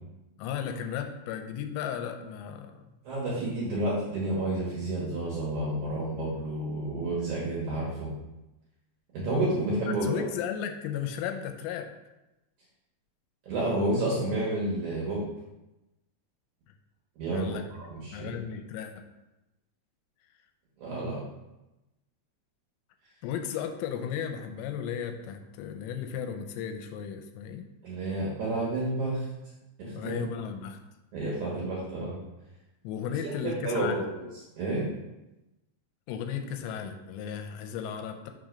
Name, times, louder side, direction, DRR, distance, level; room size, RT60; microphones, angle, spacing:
voice 1, 0.4-2.9 9.7-11.9 17.3-17.7 18.1-19.1 23.2-27.7 29.9-30.8 32.8-34.1 36.1-38.3, left 8 dB, 85° left, 7 dB, 2.8 m, -35 dB
voice 2, 3.0-8.1 9.1-10.2 13.5-15.2 17.2-18.3 20.8-21.2 27.8-29.3 29.8-30.2 31.1-32.2 33.6-34.2 34.6-34.9, right 2 dB, 60° right, -6 dB, 2.1 m, -30 dB
5.8 x 3.9 x 5.0 m, 0.98 s
omnidirectional pair, 5.0 m